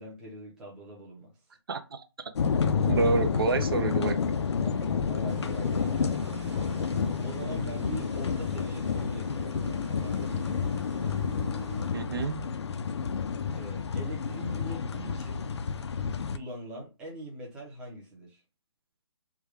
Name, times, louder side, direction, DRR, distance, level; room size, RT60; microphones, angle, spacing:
voice 1, 0.0-1.3 4.6-6.1 7.2-10.7 13.6-15.5 16.3-18.4, right 1 dB, 5° right, 0.6 m, -43 dB
voice 2, 1.7-2.3 2.9-4.2 11.9-12.4, right 4 dB, 55° right, 0.5 m, -28 dB
sound 1, 2.4-16.4, left 6 dB, 70° left, 0.4 m, -30 dB
sound 2, 5.3-11.9, right 2 dB, 90° right, 1.1 m, -44 dB
3.4 x 2.3 x 3.2 m
hypercardioid pair, 160°, 15 cm